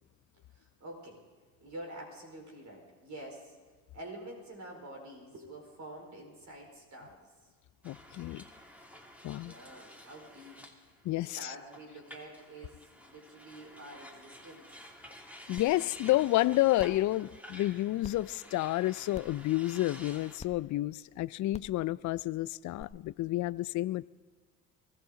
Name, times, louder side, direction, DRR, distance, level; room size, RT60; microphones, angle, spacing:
voice 1, 0.5-1.2 1.6-3.6 3.9-7.3 9.3-10.6 11.2-14.7, right 1 dB, 45° right, 1 dB, 4.6 m, -47 dB
voice 2, 7.8-8.4 9.2-9.6 11.0-11.6 15.5-24.1, left 16 dB, 50° left, 18 dB, 0.5 m, -30 dB
sound 1, 7.8-20.4, equal, 5° right, 2.9 m, -51 dB
sound 2, 15.6-15.7 16.1-16.2 16.8-17.0 18.0-18.1 19.1-19.4 20.4-20.5 21.5-21.7 22.8-22.9, left 4 dB, 15° left, 0.8 m, -45 dB
23.5 x 15.0 x 3.9 m, 1.4 s
hypercardioid pair, 60°, 39 cm